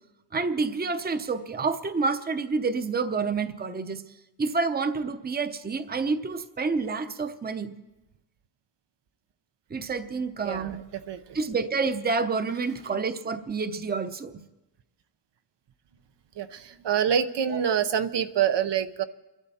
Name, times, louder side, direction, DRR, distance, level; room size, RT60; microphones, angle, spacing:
voice 1, 0.3-4.0 4.4-7.8 9.7-10.8 11.3-14.4 17.5-17.6, right 4 dB, 25° right, 10 dB, 0.7 m, -28 dB
voice 2, 10.4-10.8 11.1-11.4 16.4-19.0, right 8 dB, 85° right, 10 dB, 0.9 m, -26 dB
29.0 x 12.0 x 4.2 m, 1.1 s
wide cardioid pair, 165°, 41 cm